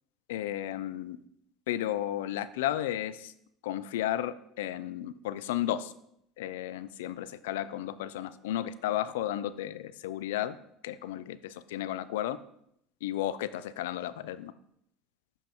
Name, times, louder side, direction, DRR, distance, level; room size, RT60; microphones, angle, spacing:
voice 1, 0.3-1.2 1.7-3.3 3.6-5.9 6.4-10.6 10.8-12.4 13.0-14.5, left 12 dB, 80° left, 15 dB, 0.3 m, -33 dB
7.1 x 5.4 x 3.0 m, 0.73 s
hypercardioid pair, 85°, 0 cm